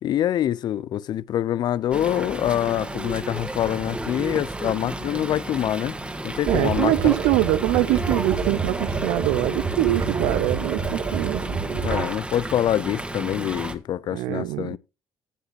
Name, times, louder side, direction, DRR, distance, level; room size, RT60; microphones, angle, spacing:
voice 1, 0.0-6.0 6.2-7.1 11.8-14.8, left 11 dB, 55° left, 0.5 m, -25 dB
Fowl, 1.9-13.8, right 1 dB, 15° right, 1.6 m, -32 dB
sound 1, 6.5-12.0, right 5 dB, 45° right, 2.8 m, -28 dB
voice 2, 6.5-11.6 14.1-14.8, right 17 dB, 75° right, 0.4 m, -24 dB
15.0 x 7.9 x 3.2 m
hypercardioid pair, 60°, 8 cm